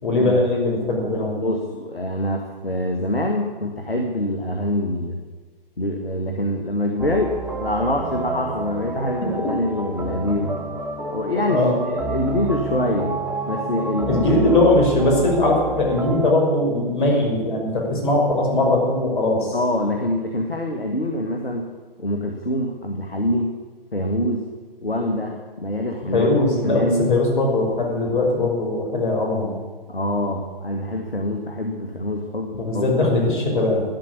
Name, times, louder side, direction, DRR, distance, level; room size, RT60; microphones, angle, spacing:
voice 1, 0.0-1.4 11.5-11.8 14.1-19.6 26.1-29.5 32.6-33.8, left 2 dB, 60° left, 0 dB, 5.7 m, -20 dB
voice 2, 1.4-5.2 5.8-10.6 11.1-13.2 13.5-14.5 19.5-21.7 22.0-23.6 23.9-24.5 24.8-26.3 26.6-27.1 29.9-32.9, left 1 dB, 85° left, 3 dB, 2.1 m, -25 dB
sound 1, 7.0-16.3, right 3 dB, 5° right, 0.7 m, -30 dB
12.5 x 12.0 x 8.6 m, 1.3 s
figure-of-eight pair, 125°, 29 cm